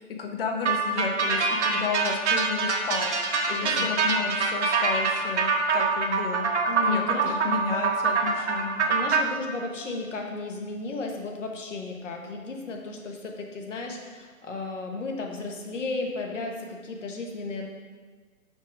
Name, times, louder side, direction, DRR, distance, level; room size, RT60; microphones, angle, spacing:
voice 1, 0.0-3.2 3.5-6.5 6.8-8.9, left 5 dB, 40° left, 3 dB, 0.8 m, -32 dB
sound 1, 0.6-9.2, right 4 dB, 50° right, 0.9 m, -25 dB
voice 2, 6.7-7.4 8.9-17.7, left 3 dB, 55° left, 1 dB, 1.2 m, -34 dB
5.6 x 4.8 x 4.6 m, 1.5 s
figure-of-eight pair, 130°, 44 cm